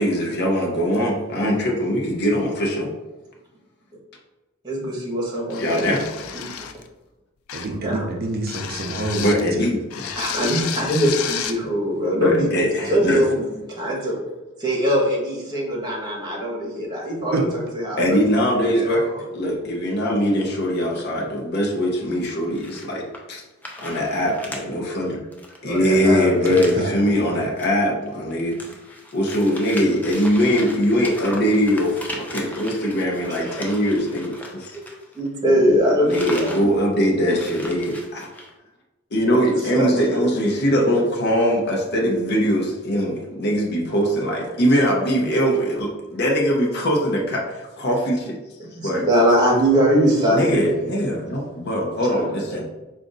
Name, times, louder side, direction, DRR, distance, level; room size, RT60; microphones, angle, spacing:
voice 1, 0.0-2.9 5.6-6.0 9.2-10.1 12.1-13.3 18.0-23.4 23.8-25.2 25.6-28.6 29.1-34.7 35.5-38.3 39.1-48.4 48.8-49.0 50.3-52.7, equal, 50° left, -1 dB, 0.7 m, -22 dB
voice 2, 4.6-6.0 6.3-6.5 7.7-8.0 10.2-12.5 12.9-13.5 13.8-14.2 14.6-18.0 18.7-19.1 25.6-26.7 35.1-36.5 39.3-40.5 40.8-41.0 45.1-45.3 48.8-51.0 52.1-52.6, equal, 20° right, -2 dB, 1.2 m, -22 dB
sound 1, 5.5-6.9 7.5-7.8 8.5-9.5 9.9-11.6, left 8 dB, 80° left, 0.4 m, -31 dB
voice 3, 7.5-9.7 17.3-17.4 25.8-26.2 26.5-26.9 27.2-27.4 37.3-37.4 51.4-51.5, right 2 dB, 45° right, 2 dB, 0.5 m, -28 dB
sound 2, 22.6-23.4 23.6-24.6 24.9-25.0 25.3-26.9 27.4-27.7 28.0-35.4 35.7-36.7 36.9-37.0 37.2-38.5, left 1 dB, 10° left, 0.5 m, -37 dB
4.9 x 2.5 x 3.8 m, 1.1 s
head